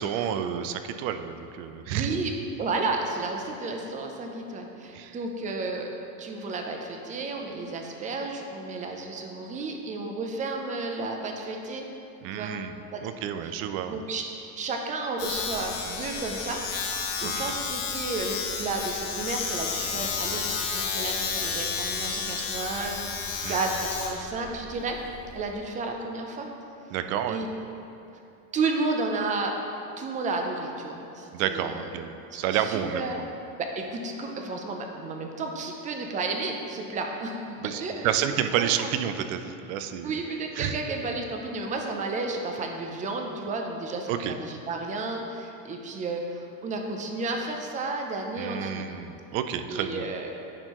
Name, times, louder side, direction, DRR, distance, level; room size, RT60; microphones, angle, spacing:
voice 1, 0.0-2.1 4.9-5.2 12.2-12.7 13.0-14.0 17.2-17.5 23.4-23.6 26.9-27.4 31.3-33.0 37.6-40.1 40.6-40.8 44.1-44.3 48.4-50.0, right 9 dB, 75° right, 9 dB, 0.6 m, -30 dB
voice 2, 1.9-2.3 2.6-5.9 6.2-11.9 12.3-12.5 12.9-13.0 13.4-13.5 13.9-14.2 14.5-16.6 17.2-23.1 23.5-25.0 25.3-26.5 27.3-27.5 28.5-29.6 30.0-31.8 32.5-33.2 33.6-38.9 40.0-48.9 49.7-50.4, right 3 dB, 20° right, 2 dB, 0.5 m, -32 dB
Domestic sounds home sounds, 15.2-25.6, left 5 dB, 90° left, 1.1 m, -32 dB
9.8 x 4.4 x 3.0 m, 2.8 s
cardioid pair, 145°, 40 cm